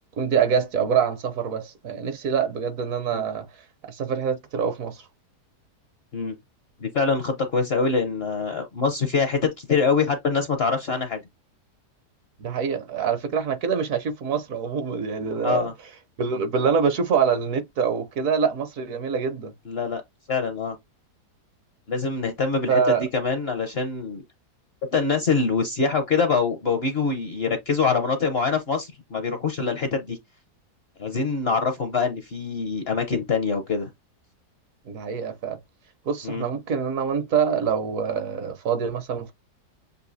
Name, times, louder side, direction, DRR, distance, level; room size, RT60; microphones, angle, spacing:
voice 1, 0.2-3.5 3.9-5.0 12.4-15.7 16.2-19.5 22.7-23.0 34.9-35.6 36.1-39.3, right 6 dB, 60° right, 1.0 m, -25 dB
voice 2, 6.8-11.2 15.4-15.7 19.7-20.0 20.3-20.7 21.9-22.8 23.1-24.2 24.9-30.2 31.0-33.9 36.2-36.4, left 5 dB, 55° left, 0.7 m, -24 dB
6.8 x 2.6 x 2.6 m
omnidirectional pair, 1.8 m